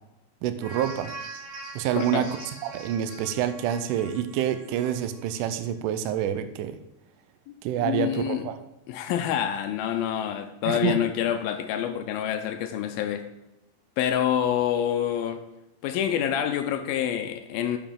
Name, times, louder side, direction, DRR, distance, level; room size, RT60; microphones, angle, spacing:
voice 1, 0.4-1.1 1.8-2.3 2.6-6.8 7.6-8.6 10.7-11.0, right 10 dB, 85° right, 10 dB, 1.9 m, -27 dB
sound 1, 0.6-5.3 5.7-5.8, right 3 dB, 60° right, 5.4 m, -42 dB
voice 2, 2.0-2.3 7.5-7.6 7.8-8.5 8.9-13.3 14.0-15.4 15.8-17.8, left 10 dB, 85° left, 7 dB, 2.4 m, -27 dB
10.0 x 7.1 x 3.8 m, 0.92 s
omnidirectional pair, 4.4 m